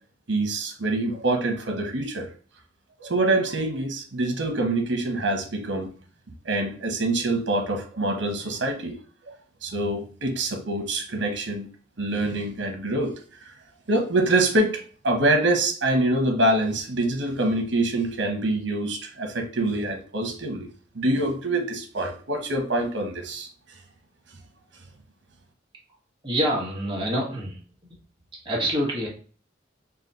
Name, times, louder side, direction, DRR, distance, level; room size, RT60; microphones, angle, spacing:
voice 1, 0.3-2.3 3.0-5.9 6.4-9.0 9.3-9.4 9.6-11.7 12.0-13.1 13.5-13.6 13.9-20.7 20.9-23.5, right 2 dB, 80° right, 3 dB, 1.0 m, -25 dB
voice 2, 26.2-27.6 28.4-29.1, equal, 25° right, -3 dB, 1.3 m, -26 dB
4.0 x 2.3 x 4.0 m, 0.41 s
head